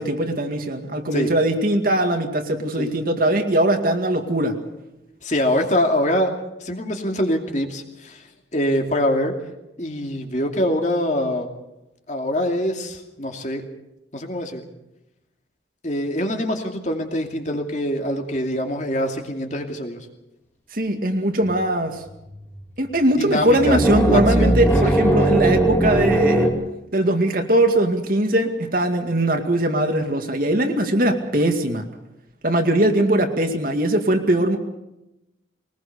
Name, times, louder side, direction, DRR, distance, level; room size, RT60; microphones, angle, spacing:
voice 1, 0.0-4.6 20.7-22.0 22.8-26.5 26.9-31.8 32.4-34.6, right 1 dB, 50° right, 5 dB, 2.3 m, -20 dB
voice 2, 5.2-6.3 6.6-8.3 8.5-9.4 9.8-11.5 12.1-13.6 14.1-14.6 15.8-20.1 23.1-23.8 24.1-24.9, left 1 dB, 40° left, 3 dB, 2.6 m, -24 dB
sound 1, 21.5-21.6 21.9-22.6 23.3-26.5, right 1 dB, 10° left, 2.7 m, -19 dB
22.0 x 20.0 x 6.8 m, 0.90 s
head